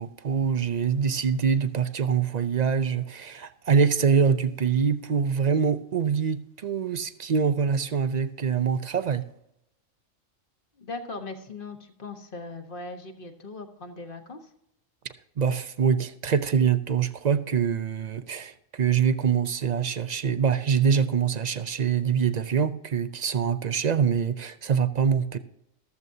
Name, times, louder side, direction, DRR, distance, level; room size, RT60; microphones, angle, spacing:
voice 1, 0.0-9.2 15.4-25.4, right 6 dB, 55° right, 0.5 m, -24 dB
voice 2, 10.8-14.5, left 3 dB, 40° left, 1.5 m, -39 dB
14.0 x 13.5 x 2.7 m
omnidirectional pair, 1.4 m